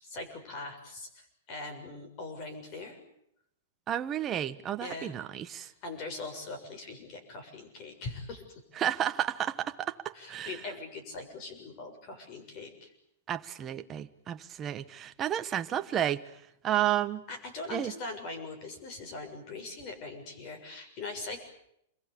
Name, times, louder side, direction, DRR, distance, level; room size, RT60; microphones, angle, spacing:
voice 1, 0.0-3.0 4.8-5.1 5.6-8.5 10.1-12.9 17.3-21.4, left 3 dB, 30° left, 6 dB, 6.9 m, -41 dB
voice 2, 3.9-5.7 8.8-10.5 13.3-16.2 16.6-17.2 17.7-17.9, right 11 dB, 20° right, 9 dB, 1.2 m, -31 dB
28.5 x 23.0 x 8.6 m, 0.75 s
supercardioid pair, 170°, 0 cm